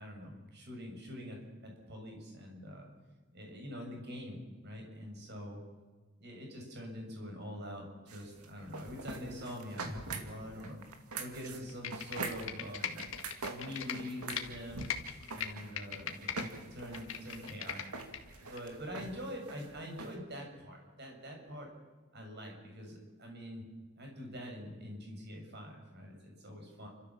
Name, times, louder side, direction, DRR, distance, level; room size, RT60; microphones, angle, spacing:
voice 1, 0.0-2.9 3.3-5.6 6.2-10.8 11.2-13.1 13.5-14.9 15.3-17.9 18.4-21.7 22.1-23.6 23.9-26.9, equal, 50° right, 1 dB, 6.7 m, -45 dB
sound 1, 8.1-20.1, right 3 dB, 85° right, 2.4 m, -44 dB
Computer keyboard, 11.7-14.4 14.8-16.4 16.8-18.2 18.6-18.7, left 8 dB, 65° left, 2.0 m, -39 dB
30.0 x 14.0 x 7.3 m, 1.3 s
head